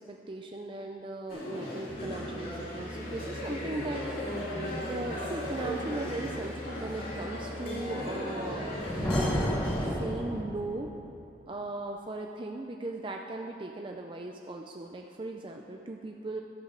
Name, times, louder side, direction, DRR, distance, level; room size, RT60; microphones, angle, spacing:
voice 1, 0.1-4.4 4.9-9.5 9.9-10.9 11.5-16.4, right 2 dB, 30° right, 2 dB, 0.4 m, -38 dB
sound 1, 1.3-9.9, left 1 dB, 55° left, 2.8 m, -37 dB
sound 2, 1.9-9.6, equal, 70° left, 2.9 m, -45 dB
Thunder, 8.5-11.1, equal, 10° left, 0.9 m, -31 dB
12.5 x 6.1 x 6.6 m, 2.8 s
head